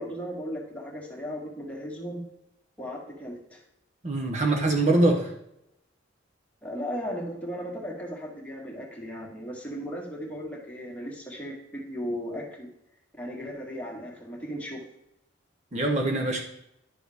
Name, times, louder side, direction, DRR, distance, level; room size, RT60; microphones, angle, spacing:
voice 1, 0.0-2.2 2.8-3.6 6.6-12.7 13.2-14.8, equal, 5° left, 1.8 m, -36 dB
voice 2, 4.0-5.3 15.7-16.4, right 2 dB, 35° right, 0.8 m, -23 dB
10.5 x 6.2 x 3.5 m
head